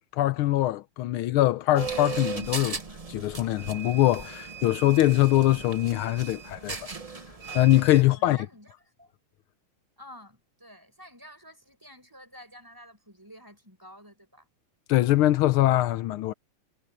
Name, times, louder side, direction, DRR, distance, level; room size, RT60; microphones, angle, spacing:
voice 1, 0.0-2.8 3.1-6.8 7.5-8.4 14.9-16.3, left 15 dB, 85° left, 1.5 m, -23 dB
sound 1, 1.8-8.0, right 5 dB, 30° right, 0.7 m, -37 dB
voice 2, 8.0-8.7 9.0-9.1 10.0-14.5, equal, 10° right, 5.6 m, -50 dB
omnidirectional pair, 2.3 m